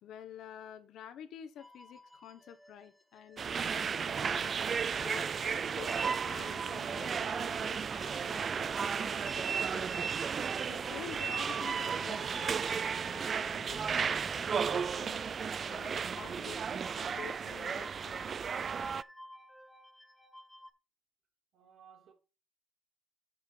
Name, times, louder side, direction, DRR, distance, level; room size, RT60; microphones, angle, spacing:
voice 1, 0.0-4.6 5.0-10.1 10.6-15.2 15.7-16.6 16.9-18.2, left 9 dB, 80° left, 1.2 m, -49 dB
sound 1, 1.6-20.7, left 1 dB, 10° left, 1.9 m, -56 dB
sound 2, 3.4-19.0, right 6 dB, 45° right, 0.4 m, -34 dB
sound 3, 6.6-18.9, right 2 dB, 15° right, 0.9 m, -56 dB
voice 2, 21.5-22.1, right 7 dB, 75° right, 3.7 m, -58 dB
9.7 x 5.8 x 4.5 m
cardioid pair, 90°, 0 cm